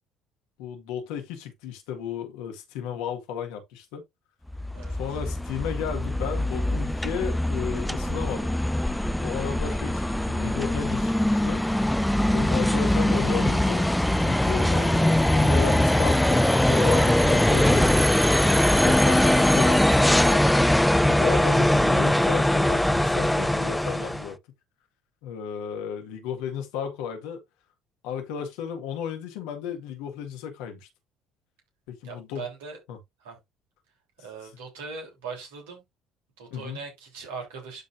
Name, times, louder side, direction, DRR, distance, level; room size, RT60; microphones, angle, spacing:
voice 1, 0.6-4.0 5.0-8.5 9.2-11.6 12.3-13.9 14.2-17.9 18.5-20.4 21.0-24.4 25.2-27.4 28.0-30.9 31.9-32.4 32.9-33.0 36.5-36.8, left 8 dB, 70° left, 1.8 m, -34 dB
sound 1, 4.5-24.3, left 1 dB, 5° left, 0.6 m, -22 dB
voice 2, 18.2-18.7 32.0-32.8 33.2-33.4 34.2-35.8 36.4-37.8, right 5 dB, 75° right, 3.5 m, -40 dB
12.0 x 4.1 x 2.6 m
hypercardioid pair, 55°, 0 cm